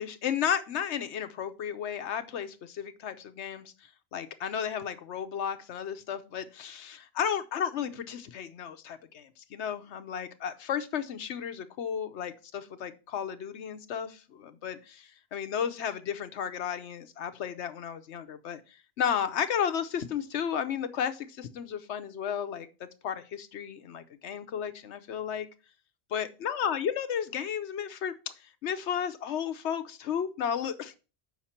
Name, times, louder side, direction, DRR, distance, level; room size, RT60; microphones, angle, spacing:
voice 1, 0.0-3.7 4.1-25.5 26.1-28.2 28.6-30.9, left 8 dB, 80° left, 10 dB, 1.0 m, -33 dB
7.3 x 5.8 x 4.3 m, 0.33 s
omnidirectional pair, 1.1 m